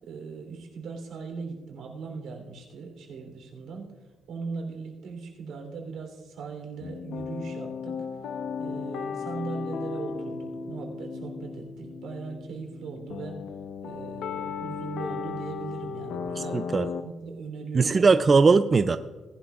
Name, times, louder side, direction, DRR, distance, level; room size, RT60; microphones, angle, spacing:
voice 1, 0.0-3.9 4.3-8.0 8.6-13.4 13.8-16.7 17.0-18.0, right 4 dB, 75° right, 2 dB, 3.2 m, -39 dB
sound 1, 6.8-17.0, left 6 dB, 70° left, 0.8 m, -35 dB
voice 2, 16.4-16.9 17.7-19.0, right 4 dB, 25° right, 11 dB, 0.3 m, -20 dB
19.0 x 11.5 x 2.4 m, 1.4 s
cardioid pair, 160°, 0 cm